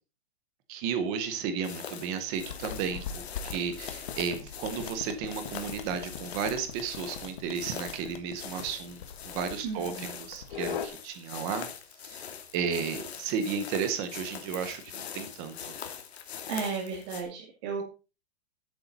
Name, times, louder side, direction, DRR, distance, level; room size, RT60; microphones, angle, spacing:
voice 1, 0.7-11.7 12.0-12.3 12.5-15.8, right 6 dB, 10° right, 10 dB, 0.6 m, -33 dB
sound 1, 1.6-17.2, left 7 dB, 75° left, 2.4 m, -43 dB
sound 2, 2.4-10.9, left 8 dB, 50° left, 1.5 m, -41 dB
voice 2, 9.6-10.2 16.5-17.8, right 5 dB, 25° right, -2 dB, 2.3 m, -34 dB
13.5 x 8.0 x 4.0 m, 0.32 s
hypercardioid pair, 180°, 32 cm